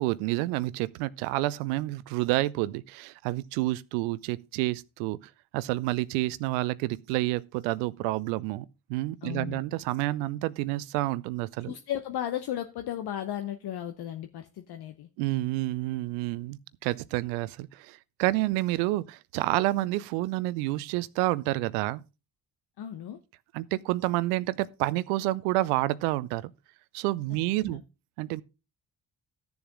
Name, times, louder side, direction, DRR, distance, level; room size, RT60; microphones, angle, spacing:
voice 1, 0.0-5.2 5.5-11.7 15.2-22.0 23.5-26.5 26.9-27.8 28.2-28.4, right 18 dB, 75° right, 0.6 m, -29 dB
voice 2, 9.2-9.6 11.6-15.1 22.8-23.2 27.7-27.8, left 11 dB, 50° left, 0.8 m, -35 dB
13.5 x 7.0 x 3.7 m
figure-of-eight pair, 40°, 48 cm